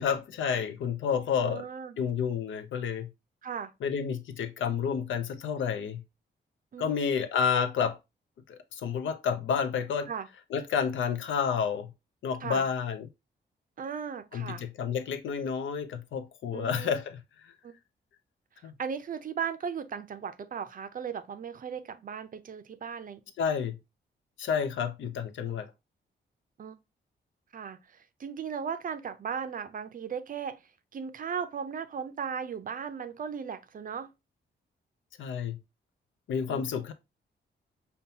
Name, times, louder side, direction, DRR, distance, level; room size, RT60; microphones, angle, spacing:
voice 1, 0.0-1.6 2.0-3.1 3.8-6.0 6.8-8.0 8.5-10.1 10.5-11.9 12.2-13.1 14.3-17.2 18.6-18.7 23.4-23.8 24.4-25.7 35.2-35.6 36.3-36.9, left 7 dB, 85° left, 0.6 m, -30 dB
voice 2, 1.4-2.0 3.4-3.7 6.7-7.0 10.1-10.3 12.4-12.7 13.8-14.6 16.5-17.0 17.6-17.7 18.8-23.2 26.6-26.7 27.5-30.6 30.9-34.1 36.5-36.6, right 7 dB, 45° right, 0.5 m, -37 dB
5.3 x 2.2 x 2.7 m
cardioid pair, 100°, 19 cm